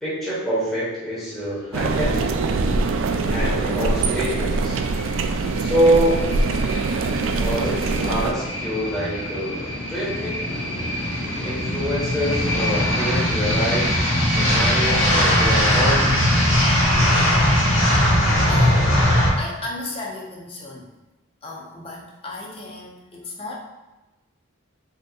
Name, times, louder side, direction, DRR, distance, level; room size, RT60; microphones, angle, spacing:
voice 1, 0.0-2.4 3.3-4.8 5.6-6.2 7.4-10.4 11.4-13.9 14.4-16.1, equal, ahead, -10 dB, 1.2 m, -25 dB
sound 1, 1.7-8.3, right 3 dB, 65° right, 0.3 m, -23 dB
sound 2, 3.5-19.3, left 1 dB, 65° left, 1.3 m, -21 dB
voice 2, 18.5-18.9 19.4-20.9 21.4-23.6, left 2 dB, 25° left, -2 dB, 0.7 m, -34 dB
4.9 x 2.9 x 2.4 m, 1.1 s
head